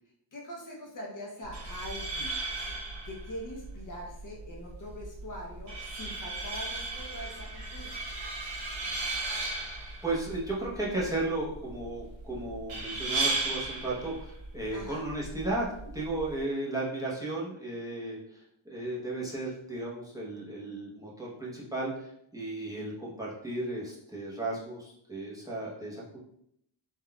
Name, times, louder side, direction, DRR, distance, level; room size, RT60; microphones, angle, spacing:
voice 1, 0.3-2.4 3.0-7.9 14.7-15.0, equal, 40° left, -2 dB, 0.7 m, -43 dB
sound 1, 1.4-16.4, right 2 dB, 75° right, 1.2 m, -36 dB
voice 2, 10.0-15.7 15.9-18.4 18.7-26.2, right 2 dB, 10° right, -7 dB, 0.8 m, -35 dB
3.7 x 2.3 x 2.3 m, 0.72 s
cardioid pair, 100°, 48 cm